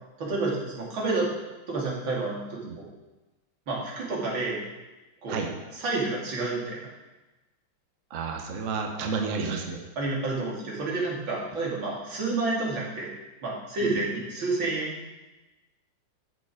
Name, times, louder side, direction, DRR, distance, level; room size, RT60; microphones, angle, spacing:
voice 1, 0.2-1.3 1.7-2.9 3.7-4.6 5.2-5.4 5.8-6.8 10.0-13.1 13.4-14.9, right 3 dB, 80° right, -4 dB, 3.4 m, -29 dB
voice 2, 8.1-9.8 13.8-14.0, right 4 dB, 45° right, 3 dB, 1.3 m, -31 dB
13.0 x 7.1 x 5.0 m, 1.1 s
omnidirectional pair, 2.1 m